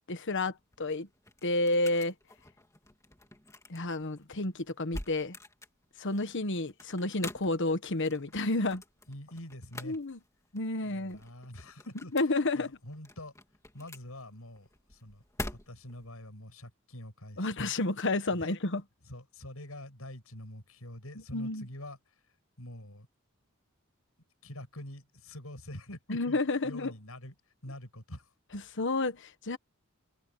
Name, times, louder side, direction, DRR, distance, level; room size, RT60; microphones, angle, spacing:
voice 1, 0.1-1.1 1.4-2.1 3.7-5.4 6.0-8.8 9.8-10.2 10.5-11.2 12.1-12.7 17.4-18.8 21.3-21.7 26.1-26.9 28.5-29.6, left 2 dB, 60° left, 1.3 m, -30 dB
sound 1, 0.5-16.1, left 1 dB, 15° left, 2.4 m, -47 dB
voice 2, 9.1-10.0 10.8-12.1 12.5-13.3 13.7-15.2 15.5-17.7 18.3-18.5 19.1-22.0 22.6-23.1 24.4-26.4 26.6-27.3 27.6-28.3, left 1 dB, 85° left, 7.3 m, -45 dB
open air
head